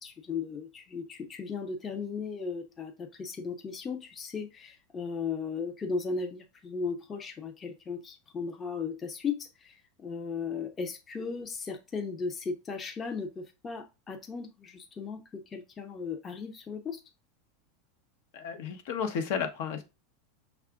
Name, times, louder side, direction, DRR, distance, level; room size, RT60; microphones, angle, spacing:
voice 1, 0.0-17.0, left 5 dB, 25° left, 0.6 m, -36 dB
voice 2, 18.3-19.8, left 7 dB, 65° left, 0.9 m, -32 dB
5.7 x 2.4 x 3.6 m
supercardioid pair, 130°, 0 cm